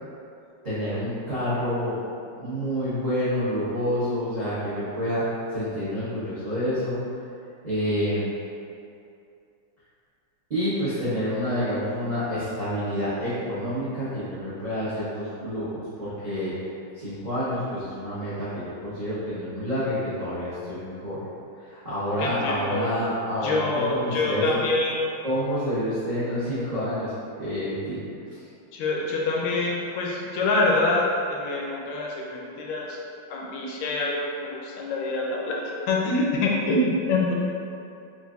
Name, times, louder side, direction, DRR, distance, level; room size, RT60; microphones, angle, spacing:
voice 1, 0.6-2.0 2.4-5.2 5.5-7.0 7.6-8.3 10.5-16.5 16.9-21.3 21.6-24.6 25.2-27.1 27.4-28.0 28.3-28.4, equal, 65° right, -13 dB, 0.4 m, -28 dB
voice 2, 22.2-22.9 23.4-24.9 28.7-33.0 33.3-37.3, left 2 dB, 75° left, -2 dB, 1.2 m, -26 dB
4.4 x 2.5 x 2.4 m, 2.5 s
omnidirectional pair, 2.1 m